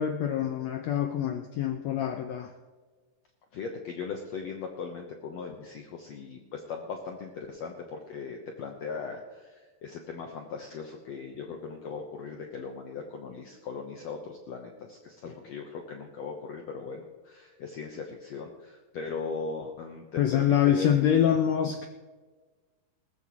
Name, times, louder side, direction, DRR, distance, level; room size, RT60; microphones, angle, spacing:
voice 1, 0.0-2.5 20.2-21.9, left 9 dB, 80° left, 6 dB, 1.5 m, -25 dB
voice 2, 3.5-20.9, left 5 dB, 65° left, 2 dB, 1.9 m, -39 dB
20.5 x 14.5 x 3.1 m, 1.3 s
omnidirectional pair, 4.0 m